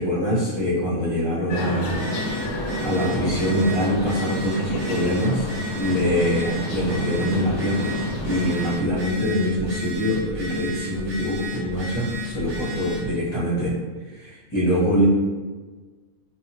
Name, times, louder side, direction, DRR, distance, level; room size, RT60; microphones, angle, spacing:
voice 1, 0.0-2.0 2.8-5.5 5.8-8.0 8.2-13.7 14.1-15.0, equal, 25° left, -10 dB, 0.6 m, -24 dB
sound 1, 1.5-8.7, equal, 75° left, 1.0 m, -30 dB
Telephone, 1.8-13.1, left 1 dB, 55° right, 0.9 m, -33 dB
2.7 x 2.3 x 2.6 m, 1.4 s
omnidirectional pair, 1.6 m